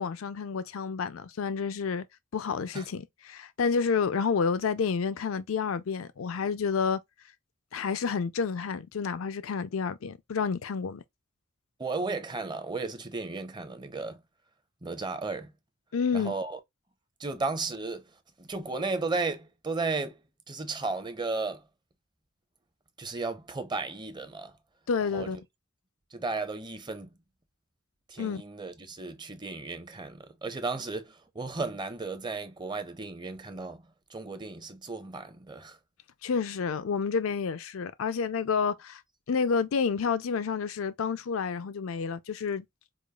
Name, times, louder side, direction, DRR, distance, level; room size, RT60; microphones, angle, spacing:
voice 1, 0.0-2.0 2.3-7.0 7.7-11.0 15.9-16.3 24.9-25.4 28.2-28.4 36.2-39.0 39.3-42.7, left 5 dB, 85° left, 0.4 m, -29 dB
voice 2, 11.8-14.2 14.8-15.5 16.1-16.6 17.2-18.1 18.4-20.2 20.5-21.6 23.0-24.5 25.1-25.4 26.1-27.1 28.1-33.8 34.1-35.8, right 3 dB, 20° right, 0.6 m, -34 dB
4.9 x 2.3 x 2.3 m
head